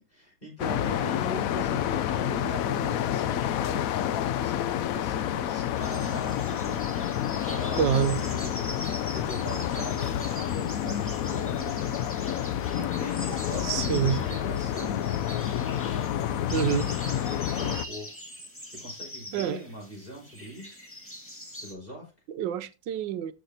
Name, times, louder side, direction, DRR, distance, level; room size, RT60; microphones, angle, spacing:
voice 1, 0.1-6.8 7.5-11.9 12.5-15.1 15.7-15.8 16.2-17.0 17.3-18.1 18.7-20.8 21.6-22.1, right 1 dB, 30° left, 5.7 m, -41 dB
sound 1, 0.6-17.8, left 11 dB, 75° left, 0.8 m, -29 dB
sound 2, 5.7-21.7, equal, 5° left, 1.8 m, -42 dB
voice 2, 7.8-8.2 13.6-14.2 16.5-16.9 19.3-19.6 22.3-23.3, right 9 dB, 85° right, 1.3 m, -27 dB
13.0 x 5.9 x 2.8 m
omnidirectional pair, 2.0 m